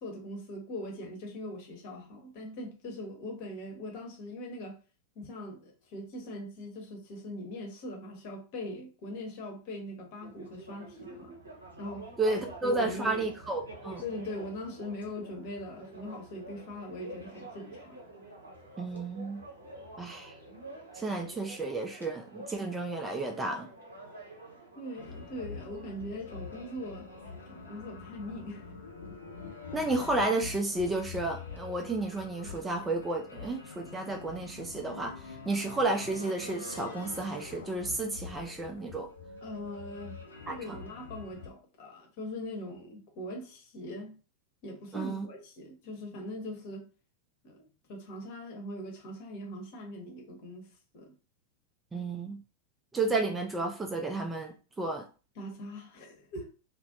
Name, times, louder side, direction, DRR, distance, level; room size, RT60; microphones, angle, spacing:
voice 1, 0.0-4.8 5.2-11.3 11.8-12.1 12.6-13.3 14.0-18.0 24.7-28.7 39.4-40.2 40.5-44.1 44.6-46.9 47.4-51.1 55.4-56.5, left 1 dB, 50° left, 0.8 m, -41 dB
sound 1, 10.2-28.7, right 2 dB, 75° right, 0.8 m, -49 dB
voice 2, 12.2-14.0 18.8-19.4 20.0-20.4 20.9-23.7 29.7-39.1 40.5-40.8 44.9-45.3 51.9-52.4 52.9-55.1, right 2 dB, 15° right, 0.3 m, -32 dB
sound 2, 24.9-41.5, left 4 dB, 75° left, 0.6 m, -45 dB
2.4 x 2.0 x 2.5 m
figure-of-eight pair, 90°, 0 cm